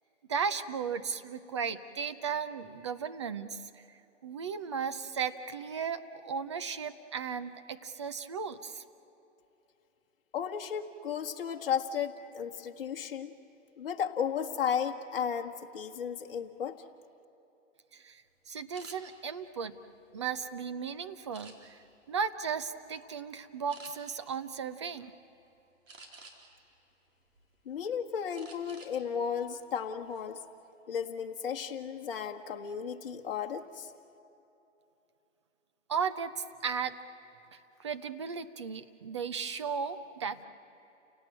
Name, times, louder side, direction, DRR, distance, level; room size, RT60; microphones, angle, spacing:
voice 1, 0.3-3.7 4.2-8.8 17.9-19.8 20.1-21.8 22.1-25.1 35.9-37.0 37.5-40.5, right 6 dB, 25° right, 11 dB, 0.6 m, -35 dB
voice 2, 10.3-13.3 13.8-16.8 27.6-30.4 30.9-33.9, left 7 dB, 45° left, 3 dB, 1.7 m, -34 dB
sound 1, 18.7-19.0 19.6-20.6 21.3-21.9 22.4-22.7 23.0-23.2 23.7-23.9 25.9-26.6 27.1-27.8 28.3-29.0 29.3-29.5 29.9-30.3, right 3 dB, 85° right, 4.4 m, -52 dB
29.5 x 18.0 x 8.8 m, 3.0 s
hypercardioid pair, 160°, 38 cm